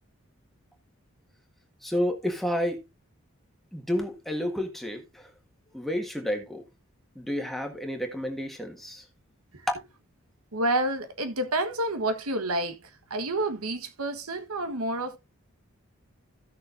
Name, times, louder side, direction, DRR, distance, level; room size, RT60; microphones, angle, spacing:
voice 1, 1.8-2.8 3.7-5.3 5.7-6.6 7.1-9.0, equal, ahead, 1.5 m, -30 dB
voice 2, 10.5-12.8 13.1-15.2, right 1 dB, 90° right, 1.4 m, -29 dB
16.0 x 6.3 x 2.6 m
head